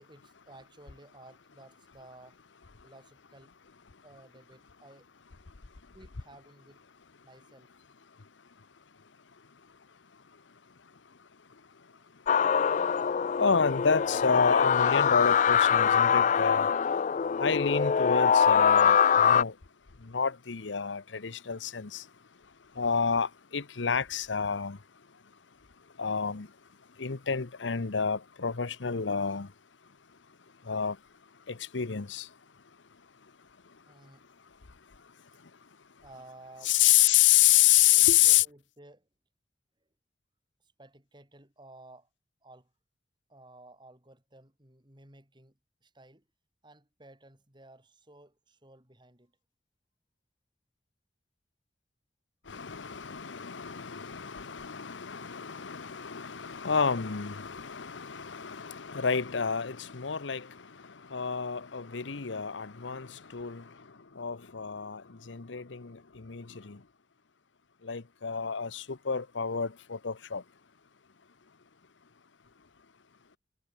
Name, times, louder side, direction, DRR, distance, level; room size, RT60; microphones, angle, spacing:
voice 1, 0.0-2.4 2.8-3.5 4.0-5.3 5.9-6.8 7.2-7.7 11.7-12.0 33.9-34.3 36.0-36.7 38.0-39.1 40.6-42.1 42.4-42.7 43.3-46.2 46.6-49.3, right 2 dB, 25° right, 4.1 m, -55 dB
sound 1, 12.3-19.4, left 7 dB, 40° left, 0.3 m, -23 dB
voice 2, 13.4-16.7 17.4-19.5 20.1-22.0 22.8-24.8 26.0-26.5 27.0-29.5 30.7-31.0 31.5-32.3 36.6-38.4 52.5-60.5 61.1-63.6 64.2-66.8 67.8-70.4, left 8 dB, 90° left, 0.9 m, -28 dB
head